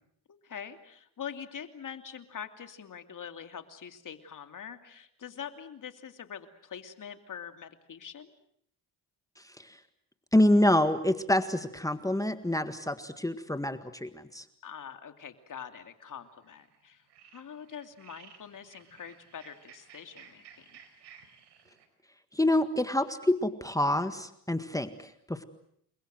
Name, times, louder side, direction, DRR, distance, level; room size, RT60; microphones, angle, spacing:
voice 1, 0.3-8.3 14.6-17.0 17.3-20.8, left 8 dB, 50° left, 8 dB, 2.8 m, -44 dB
voice 2, 9.4-9.8 10.3-14.4 22.3-25.4, left 1 dB, 10° left, 10 dB, 1.8 m, -27 dB
sound 1, 15.6-15.9 16.4-16.8 17.1-21.9, right 8 dB, 75° right, 5.1 m, -55 dB
29.5 x 22.5 x 7.8 m, 0.70 s
cardioid pair, 90°, 41 cm